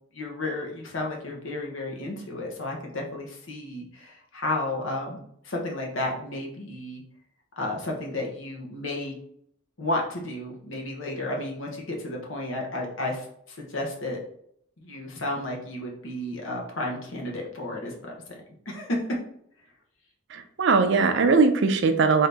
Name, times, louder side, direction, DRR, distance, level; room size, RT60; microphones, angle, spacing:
voice 1, 0.1-7.0 7.6-9.2 9.8-14.2 14.8-18.4 18.7-19.0, left 1 dB, 75° left, 0 dB, 1.0 m, -32 dB
voice 2, 20.3-22.3, right 4 dB, 60° right, 8 dB, 0.4 m, -20 dB
3.8 x 2.7 x 3.3 m, 0.68 s
head